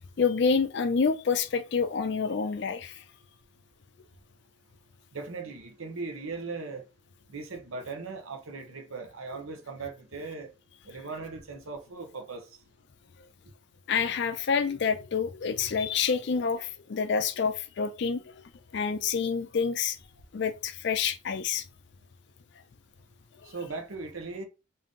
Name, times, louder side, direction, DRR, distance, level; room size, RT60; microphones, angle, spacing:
voice 1, 0.2-3.0 13.9-18.3 18.7-20.0 20.3-21.6, left 5 dB, 55° left, 0.4 m, -28 dB
voice 2, 5.1-6.8 7.3-10.5 10.9-12.5 23.4-24.4, right 4 dB, 85° right, 0.8 m, -38 dB
3.7 x 2.7 x 3.6 m
head